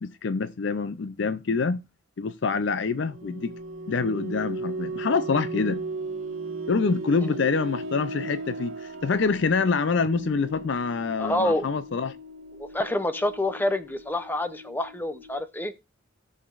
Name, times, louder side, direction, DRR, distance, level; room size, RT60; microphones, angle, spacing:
voice 1, 0.0-1.8 2.2-3.5 3.9-5.8 6.7-12.1, left 4 dB, 60° left, 0.5 m, -26 dB
sound 1, 2.9-15.4, right 2 dB, 75° right, 2.0 m, -37 dB
voice 2, 11.2-11.6 12.7-15.7, left 1 dB, 10° left, 0.6 m, -27 dB
17.5 x 6.6 x 2.5 m
head